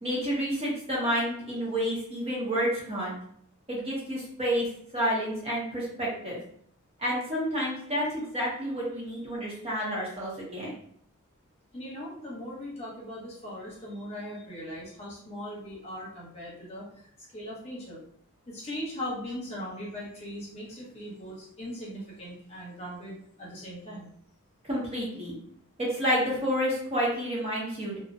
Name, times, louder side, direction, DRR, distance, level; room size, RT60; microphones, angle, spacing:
voice 1, 0.0-3.1 3.7-6.4 7.0-10.7 24.6-25.3 25.8-28.0, equal, 30° right, -5 dB, 0.7 m, -29 dB
voice 2, 11.7-18.0 18.5-24.1, equal, 30° left, -5 dB, 0.8 m, -39 dB
2.4 x 2.0 x 2.6 m, 0.66 s
head